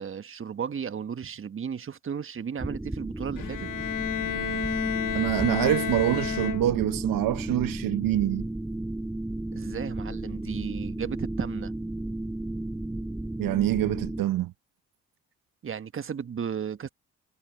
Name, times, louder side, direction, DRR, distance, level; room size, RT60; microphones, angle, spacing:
voice 1, 0.0-3.7 9.5-11.7 15.6-16.9, right 7 dB, 35° right, 1.3 m, -34 dB
sound 1, 2.6-14.2, right 1 dB, 5° right, 0.3 m, -34 dB
Bowed string instrument, 3.4-7.0, left 11 dB, 65° left, 1.3 m, -32 dB
voice 2, 5.1-8.5 13.4-14.5, right 13 dB, 65° right, 1.1 m, -25 dB
supercardioid pair, 70°, 36 cm